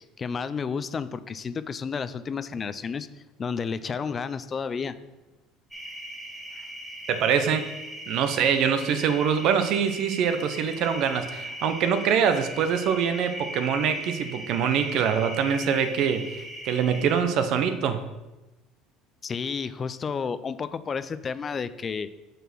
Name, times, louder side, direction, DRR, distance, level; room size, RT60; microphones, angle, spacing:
voice 1, 0.0-4.9 19.2-22.1, left 6 dB, 35° left, 13 dB, 0.4 m, -31 dB
sound 1, 5.7-17.2, right 1 dB, 10° right, 2.3 m, -39 dB
voice 2, 7.1-7.7 8.1-18.0, right 7 dB, 60° right, 9 dB, 0.8 m, -24 dB
6.7 x 4.3 x 6.0 m, 1.1 s
hypercardioid pair, 75°, 0 cm